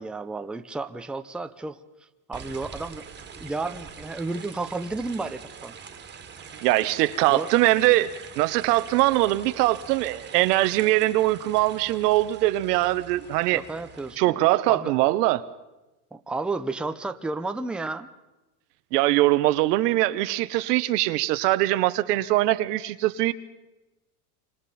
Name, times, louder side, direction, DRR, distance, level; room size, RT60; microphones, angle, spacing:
voice 1, 0.0-1.8 2.3-3.0 3.4-5.7 7.3-7.5 13.5-14.4 14.7-14.9 16.1-18.1, right 3 dB, ahead, 0.6 m, -32 dB
sound 1, 2.3-14.2, right 6 dB, 20° right, 2.0 m, -44 dB
voice 2, 6.6-13.6 14.2-15.5 18.9-23.3, right 17 dB, 85° right, 1.1 m, -22 dB
28.5 x 25.5 x 4.3 m
supercardioid pair, 130°, 46 cm